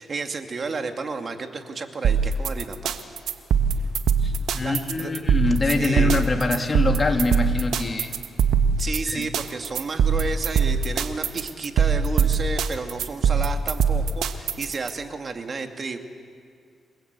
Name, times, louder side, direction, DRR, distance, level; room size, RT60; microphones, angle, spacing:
voice 1, 0.0-2.9 4.6-5.1 5.8-6.2 8.8-16.0, right 4 dB, 45° right, 5 dB, 2.4 m, -32 dB
sound 1, 2.0-14.9, right 6 dB, 80° right, 1.5 m, -22 dB
voice 2, 4.2-8.1 9.1-9.3, left 3 dB, 30° left, 3 dB, 2.9 m, -24 dB
29.0 x 21.0 x 8.3 m, 2.2 s
cardioid pair, 80°, 0 cm